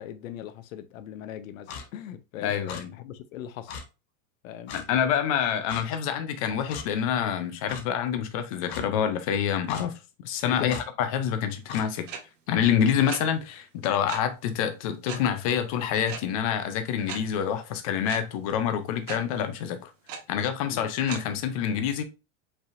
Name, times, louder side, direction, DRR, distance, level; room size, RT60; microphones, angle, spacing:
voice 1, 0.0-2.5 2.9-3.7 4.4-4.7 10.5-10.8 12.7-13.0 20.7-20.9, left 10 dB, 85° left, 0.8 m, -39 dB
Clock, 1.7-1.9 2.7-2.8 3.7-3.8 4.7-4.9 5.7-5.8 6.7-6.9 7.7-7.8 8.7-8.8 9.7-9.9 10.7-10.9 11.7-11.9, left 6 dB, 55° left, 1.0 m, -38 dB
voice 2, 2.4-2.9 4.7-10.0 10.2-12.1 12.5-19.9 20.3-22.0, left 8 dB, 30° left, 0.4 m, -27 dB
sound 1, 12.1-12.2 13.1-13.2 14.1-14.2 15.1-15.2 16.1-16.2 17.1-17.2 18.1-18.2 19.1-19.2 20.1-20.2 21.1-21.2, right 7 dB, 70° right, 1.4 m, -35 dB
5.3 x 3.4 x 2.5 m
supercardioid pair, 175°, 39 cm